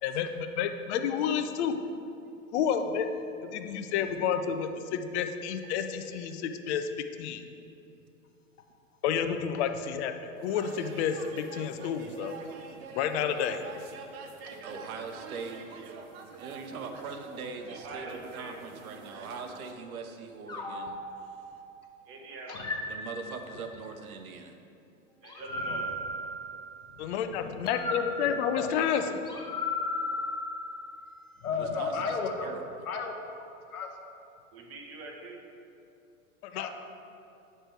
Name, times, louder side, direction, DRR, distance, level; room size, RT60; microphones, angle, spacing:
voice 1, 0.0-1.8 2.5-3.1 3.4-6.9 7.2-7.4 9.0-12.4 12.9-13.6 27.0-29.2 36.4-36.7, left 8 dB, 50° left, 7 dB, 0.6 m, -30 dB
sound 1, 10.4-19.7, right 4 dB, 45° right, 0.6 m, -46 dB
voice 2, 14.6-16.0 16.4-21.0 22.9-24.6 31.6-32.8, right 5 dB, 80° right, 6 dB, 0.8 m, -41 dB
voice 3, 17.7-18.5 22.1-22.6 25.2-25.9 34.5-35.4, right 3 dB, 30° right, 1 dB, 1.0 m, -43 dB
sound 2, 20.5-21.9 22.5-23.8 25.2-27.0 27.6-31.2, left 2 dB, 10° left, 0.6 m, -36 dB
voice 4, 28.2-28.7 31.4-32.5 32.8-33.9 36.5-36.7, left 5 dB, 85° left, 3 dB, 0.9 m, -34 dB
7.9 x 3.3 x 4.5 m, 2.7 s
hypercardioid pair, 110°, 42 cm